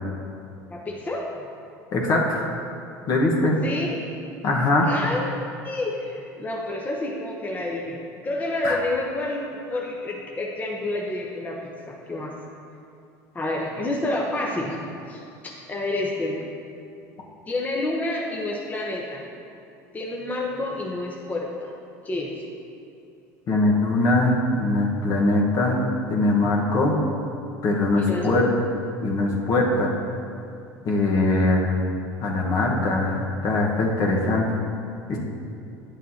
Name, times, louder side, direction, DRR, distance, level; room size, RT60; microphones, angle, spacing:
voice 1, 0.7-1.2 3.6-4.0 4.8-5.3 5.6-11.6 11.9-12.3 13.3-16.4 17.5-19.2 19.9-21.7 22.0-22.3 28.0-28.3, left 2 dB, 20° left, -2 dB, 1.0 m, -29 dB
voice 2, 1.9-2.4 3.1-3.5 4.4-4.9 8.6-8.8 23.5-27.0 27.6-28.5 29.0-29.9 30.8-31.8 32.2-34.4 35.1-35.2, left 2 dB, 50° left, -2 dB, 1.4 m, -21 dB
9.8 x 7.1 x 2.9 m, 2.6 s
supercardioid pair, 95°, 8 cm